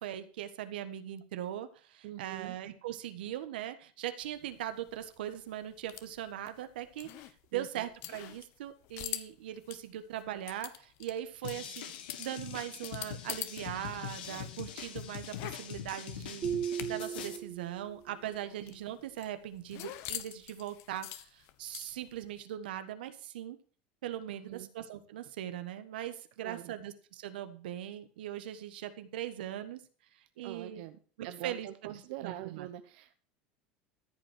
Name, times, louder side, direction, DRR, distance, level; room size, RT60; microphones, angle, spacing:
voice 1, 0.0-7.3 7.5-11.9 12.2-16.6 16.9-23.6 24.0-29.8 30.4-30.8 31.2-32.7, right 11 dB, 85° right, 10 dB, 1.3 m, -40 dB
voice 2, 2.0-2.6 7.5-7.8 18.2-18.3 24.3-24.7 26.4-26.8 30.4-33.2, right 14 dB, 70° right, 9 dB, 0.9 m, -44 dB
sound 1, 4.2-13.6 13.9-17.2 17.5-17.6 17.9-22.2, left 13 dB, 60° left, 1.1 m, -45 dB
sound 2, 11.4-17.4, left 9 dB, 90° left, 1.7 m, -43 dB
sound 3, 16.4-18.1, right 9 dB, 30° right, 0.9 m, -36 dB
14.0 x 5.4 x 6.0 m, 0.41 s
supercardioid pair, 110°, 5 cm